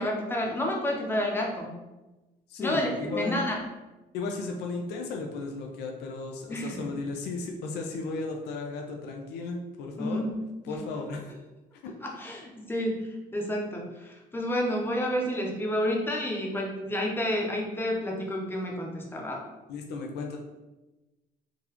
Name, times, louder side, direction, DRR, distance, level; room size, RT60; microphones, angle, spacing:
voice 1, 0.0-1.7 2.6-3.6 6.5-6.9 10.0-10.3 10.7-10.8 12.0-13.0 13.3-19.4, equal, 15° left, -1 dB, 0.7 m, -30 dB
voice 2, 2.5-3.4 4.1-10.2 10.7-11.3 11.8-11.9 19.7-20.4, left 3 dB, 80° left, 2 dB, 0.5 m, -35 dB
3.8 x 2.4 x 2.9 m, 1.1 s
cardioid pair, 110°, 17 cm